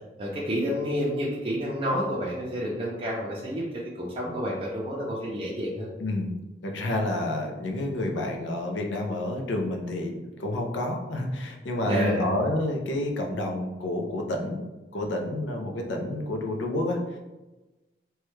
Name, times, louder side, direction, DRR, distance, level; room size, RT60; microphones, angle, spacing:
voice 1, 0.2-3.6 4.0-5.9 11.8-12.3, equal, 30° right, -5 dB, 0.4 m, -29 dB
voice 2, 6.0-6.3 6.6-14.6 14.9-17.2, left 1 dB, 90° left, 2 dB, 0.5 m, -29 dB
3.0 x 2.3 x 3.1 m, 1.1 s
head